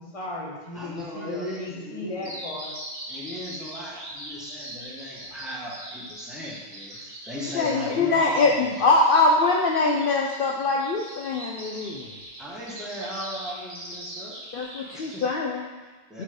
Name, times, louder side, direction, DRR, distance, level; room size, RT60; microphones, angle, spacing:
voice 1, 0.0-2.7, left 2 dB, 30° left, -2 dB, 1.2 m, -36 dB
voice 2, 0.7-2.3 3.1-8.8 12.4-14.4 14.9-15.2 15.8-16.2, equal, ahead, -6 dB, 1.4 m, -37 dB
Bird vocalization bird call bird song, 2.2-15.2, right 1 dB, 65° right, 1.9 m, -41 dB
voice 3, 7.5-12.1 14.5-15.6 16.1-16.2, left 3 dB, 60° left, 0 dB, 0.7 m, -23 dB
7.4 x 3.4 x 5.2 m, 1.3 s
omnidirectional pair, 1.2 m